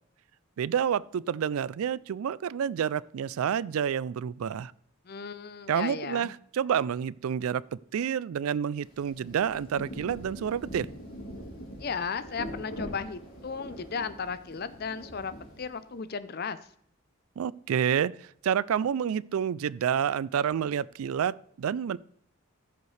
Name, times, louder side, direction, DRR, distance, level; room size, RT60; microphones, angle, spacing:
voice 1, 0.6-4.7 5.7-7.6 7.9-10.9 17.4-22.0, right 8 dB, 80° right, 0.3 m, -29 dB
voice 2, 5.1-6.3 11.8-16.6, left 5 dB, 45° left, 0.5 m, -35 dB
Rain, 8.8-16.0, equal, 75° left, 3.3 m, -43 dB
15.0 x 6.9 x 3.2 m
head